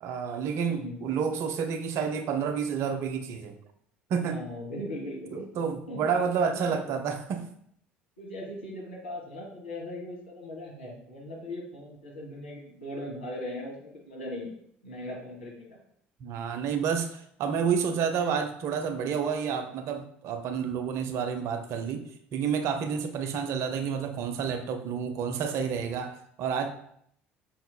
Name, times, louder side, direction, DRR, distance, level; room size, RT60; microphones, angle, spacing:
voice 1, 0.0-3.6 4.1-4.4 5.3-7.5 16.2-22.0 22.3-26.7, right 6 dB, 50° right, 7 dB, 0.6 m, -29 dB
voice 2, 0.7-1.0 4.2-5.4 5.9-6.3 6.7-6.8 8.2-14.5 14.8-15.8, left 1 dB, 80° left, -3 dB, 1.2 m, -39 dB
6.1 x 3.9 x 2.2 m, 0.68 s
figure-of-eight pair, 60°, 6 cm